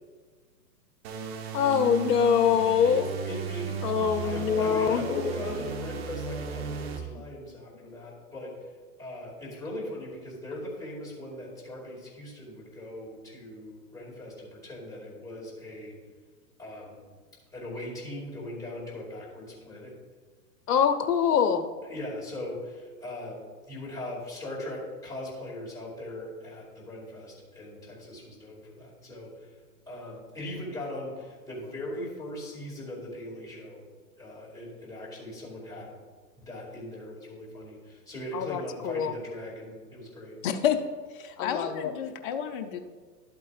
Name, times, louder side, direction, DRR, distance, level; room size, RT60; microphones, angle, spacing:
sound 1, 1.0-7.0, right 7 dB, 40° right, 0.9 m, -35 dB
voice 1, 1.5-3.0 3.8-5.3 20.7-21.7 38.3-39.1 41.4-41.9, left 7 dB, 65° left, 8 dB, 0.8 m, -24 dB
voice 2, 2.8-3.8 4.2-8.5 9.0-15.9 16.6-17.0 17.5-19.9 21.8-23.4 23.7-29.5 29.9-33.8 34.2-35.9 36.4-40.3, left 1 dB, 5° left, -7 dB, 2.5 m, -39 dB
voice 3, 40.4-40.8 41.1-42.8, left 9 dB, 35° left, 6 dB, 0.6 m, -30 dB
11.5 x 8.4 x 2.5 m, 1.5 s
hypercardioid pair, 130°, 50 cm